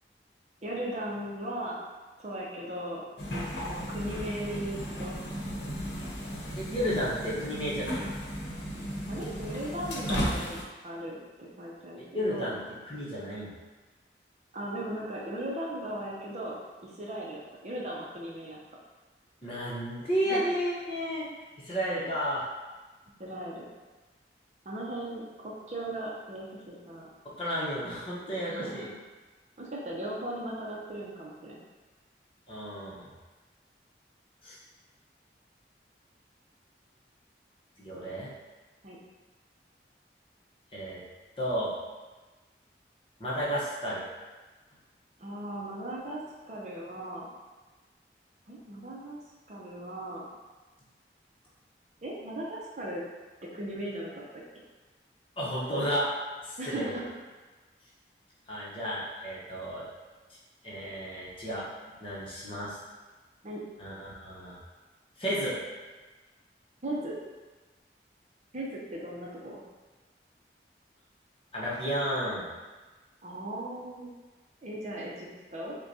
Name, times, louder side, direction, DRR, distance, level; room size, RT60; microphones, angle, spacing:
voice 1, 0.6-1.8 2.2-3.0 3.6-5.2 9.1-12.6 14.5-18.6 20.3-20.4 23.2-23.7 24.7-27.1 28.4-28.9 29.6-31.7 37.9-38.1 38.8-39.0 45.2-47.3 48.5-49.2 49.5-50.3 52.0-53.0 53.4-54.4 56.6-57.1 63.4-63.6 66.8-67.2 68.5-69.6 73.2-74.1 74.6-75.8, right 1 dB, 40° right, -4 dB, 0.6 m, -38 dB
sound 1, 3.2-10.6, equal, 85° left, 0.8 m, -35 dB
voice 2, 6.6-8.1 12.0-12.6 12.9-13.5 19.4-21.3 21.6-22.4 27.4-28.9 32.5-33.1 34.4-34.6 37.8-38.3 40.7-41.0 41.4-41.7 43.2-44.0 55.4-56.1 56.4-57.0 58.5-59.9 60.6-62.8 63.8-64.6 65.2-65.6 71.5-72.5, equal, 30° left, -7 dB, 0.9 m, -32 dB
6.2 x 2.2 x 2.7 m, 1.3 s
head